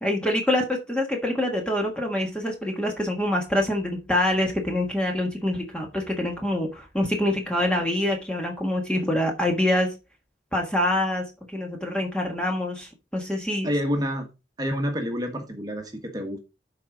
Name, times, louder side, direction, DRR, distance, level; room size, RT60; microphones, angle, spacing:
voice 1, 0.0-9.9 10.5-11.2 11.5-13.7, left 1 dB, 5° left, 1.3 m, -25 dB
voice 2, 13.6-14.3 14.6-16.4, equal, 20° right, 1.3 m, -28 dB
12.5 x 4.8 x 3.8 m
head